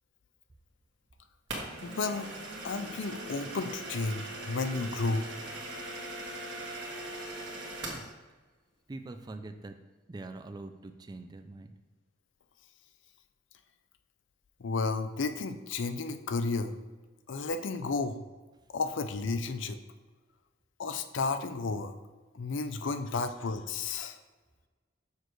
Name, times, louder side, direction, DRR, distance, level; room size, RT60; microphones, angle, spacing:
sound 1, 1.5-8.1, right 2 dB, 65° right, 1.6 m, -40 dB
voice 1, 1.8-5.3 14.6-16.7 17.3-18.3 18.7-19.8 20.8-21.9 22.3-24.2, left 3 dB, 75° left, 10 dB, 0.5 m, -32 dB
voice 2, 7.8-8.1 8.9-9.8 10.1-11.7, right 2 dB, 20° right, 8 dB, 0.3 m, -43 dB
6.5 x 6.5 x 3.1 m, 1.3 s
head